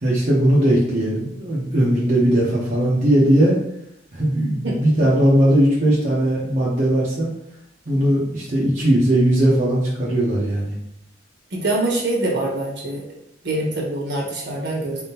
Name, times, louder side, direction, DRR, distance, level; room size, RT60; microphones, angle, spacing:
voice 1, 0.0-3.6 4.1-7.3 7.9-10.7, right 1 dB, 45° right, -6 dB, 1.0 m, -18 dB
voice 2, 11.5-13.0 13.4-15.0, right 2 dB, 65° right, -2 dB, 1.5 m, -24 dB
4.6 x 3.6 x 2.9 m, 0.77 s
head